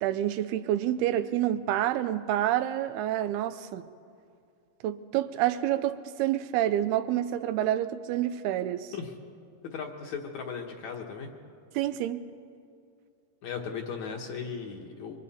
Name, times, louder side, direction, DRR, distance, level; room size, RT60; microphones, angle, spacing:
voice 1, 0.0-3.9 4.8-8.9 11.7-12.2, right 12 dB, 85° right, 2.7 m, -28 dB
voice 2, 9.6-11.3 13.4-15.2, left 6 dB, 60° left, 2.2 m, -37 dB
28.0 x 24.0 x 4.2 m
omnidirectional pair, 4.4 m